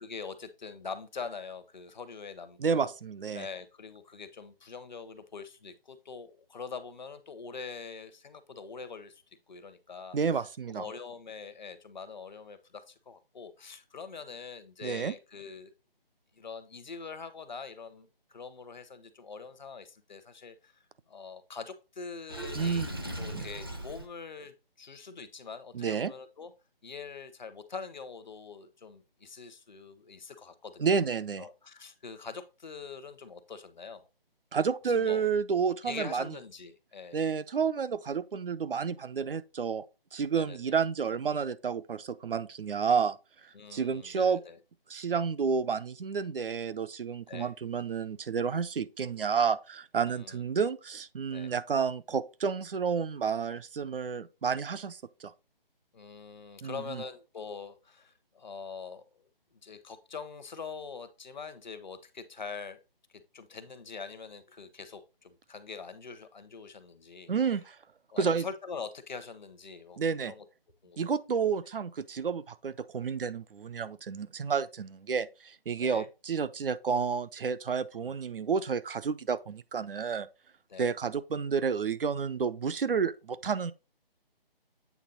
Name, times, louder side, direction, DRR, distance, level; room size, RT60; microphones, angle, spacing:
voice 1, 0.0-2.9 3.3-10.4 10.7-15.7 16.3-22.9 23.2-26.5 26.8-31.0 31.4-34.1 34.8-35.2 35.8-37.3 40.3-40.8 43.5-44.6 47.3-47.5 50.1-50.4 51.3-51.5 55.9-62.8 63.1-67.3 68.1-70.4 70.8-71.1 75.8-76.1 80.7-80.9, left 5 dB, 50° left, 0.9 m, -44 dB
voice 2, 2.6-3.5 10.1-10.8 14.8-15.1 22.6-22.9 23.3-23.5 25.7-26.1 30.8-31.4 34.5-36.3 37.1-39.8 40.1-43.2 43.7-44.4 44.9-55.3 56.6-57.0 67.3-67.8 68.2-68.4 70.0-70.3 71.0-80.3 80.8-83.7, right 6 dB, 65° right, 0.6 m, -30 dB
Water / Sink (filling or washing), 22.3-24.1, right 1 dB, 25° right, 0.5 m, -38 dB
8.3 x 3.4 x 3.9 m
figure-of-eight pair, 170°, 30 cm